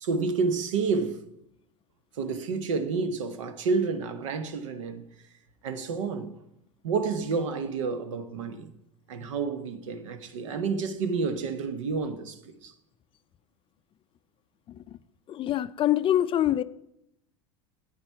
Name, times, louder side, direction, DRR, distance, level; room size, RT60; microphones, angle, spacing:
voice 1, 0.0-1.2 2.2-5.0 5.6-6.3 6.8-8.7 9.1-12.7, right 4 dB, 80° right, 1.0 m, -29 dB
voice 2, 15.3-16.6, left 12 dB, 35° left, 0.4 m, -25 dB
9.6 x 8.6 x 4.6 m
hypercardioid pair, 90°, 16 cm